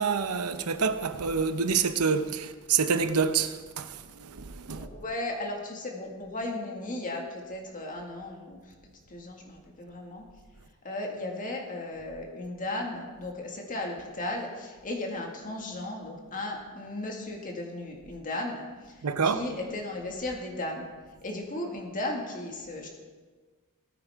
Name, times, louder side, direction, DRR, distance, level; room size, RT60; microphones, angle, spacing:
voice 1, 0.0-4.9 19.0-19.4, right 5 dB, 80° right, 0.8 m, -27 dB
voice 2, 4.7-8.6 9.1-10.3 10.8-18.9 19.2-20.9 21.2-22.9, left 2 dB, 40° left, 1.9 m, -35 dB
19.0 x 9.2 x 3.6 m
head